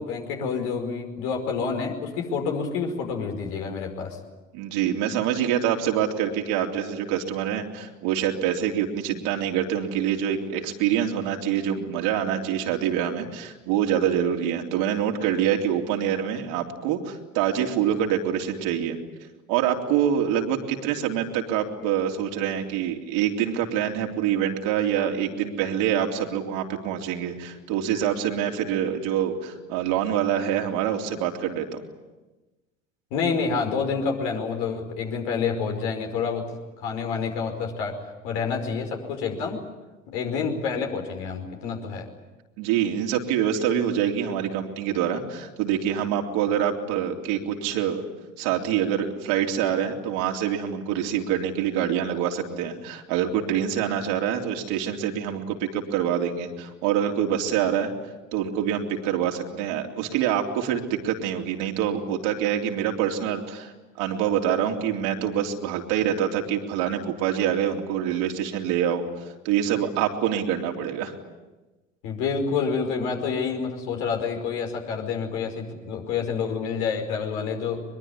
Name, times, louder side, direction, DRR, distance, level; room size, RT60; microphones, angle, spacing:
voice 1, 0.0-4.2 33.1-36.5 36.8-39.6 40.1-42.1 72.0-77.8, left 5 dB, 65° left, 3 dB, 5.4 m, -28 dB
voice 2, 4.5-19.0 19.5-31.8 42.6-48.0 48.4-57.9 58.3-63.7 64.0-69.0 69.5-71.1, right 9 dB, 60° right, 2 dB, 3.4 m, -25 dB
23.0 x 22.5 x 9.8 m, 1.1 s
figure-of-eight pair, 70°, 38 cm